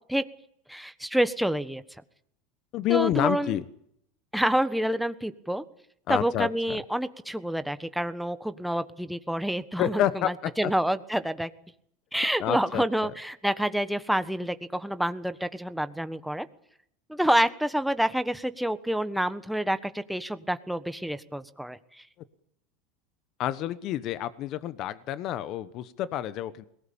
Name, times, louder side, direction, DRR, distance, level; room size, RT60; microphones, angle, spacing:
voice 1, 0.7-1.8 2.9-3.6 4.3-5.6 6.1-11.5 12.1-16.5 17.1-21.8, right 1 dB, ahead, 11 dB, 1.4 m, -28 dB
voice 2, 2.7-3.6 6.1-6.8 9.8-10.7 12.4-12.8 23.4-26.7, left 12 dB, 50° left, 14 dB, 1.1 m, -28 dB
22.0 x 19.0 x 8.7 m, 0.72 s
hypercardioid pair, 95°, 0 cm